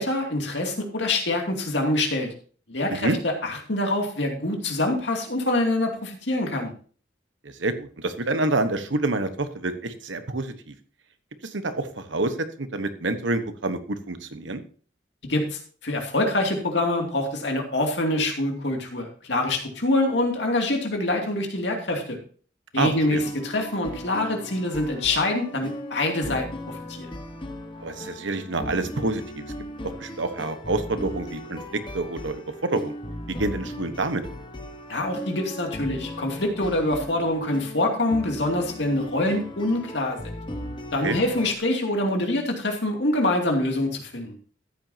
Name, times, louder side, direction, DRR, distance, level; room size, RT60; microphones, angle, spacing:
voice 1, 0.0-2.3 2.7-6.7 15.2-22.2 22.7-27.1 34.9-40.3 40.9-44.4, left 1 dB, 70° left, 2 dB, 2.6 m, -25 dB
voice 2, 7.4-10.7 11.4-14.6 22.8-23.2 27.8-29.5 29.8-32.9 33.3-34.4 41.0-41.2, right 2 dB, 90° right, 9 dB, 1.2 m, -28 dB
sound 1, 22.9-41.5, left 1 dB, 25° left, 1.2 m, -38 dB
13.5 x 9.2 x 2.8 m, 0.42 s
head